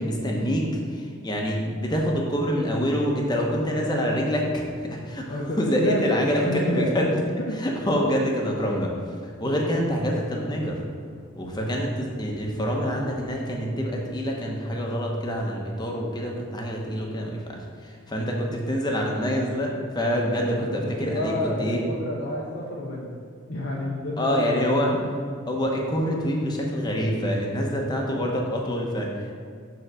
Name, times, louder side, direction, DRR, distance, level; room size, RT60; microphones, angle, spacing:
voice 1, 0.0-5.2 5.6-7.1 7.6-8.9 9.4-10.8 11.4-21.8 24.2-24.9 25.5-29.3, equal, 20° left, -1 dB, 0.9 m, -26 dB
voice 2, 5.3-6.9 7.4-7.6 20.6-23.2 23.5-25.0, left 1 dB, 60° left, -3 dB, 0.8 m, -30 dB
6.6 x 3.9 x 6.2 m, 2.3 s
head